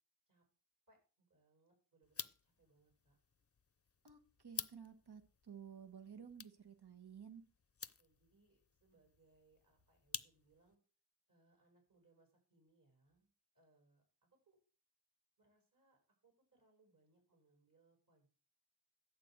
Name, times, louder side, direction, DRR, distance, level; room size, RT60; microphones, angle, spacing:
voice 1, 0.9-3.2 8.0-10.8 11.3-14.0 14.3-14.6 15.4-18.3, right 3 dB, 50° right, 0 dB, 7.3 m, -74 dB
sound 1, 2.0-10.8, left 6 dB, 35° left, 0.6 m, -52 dB
voice 2, 4.0-7.4, right 7 dB, 70° right, 7 dB, 1.5 m, -54 dB
11.0 x 4.4 x 8.0 m, 0.37 s
cardioid pair, 45°, 41 cm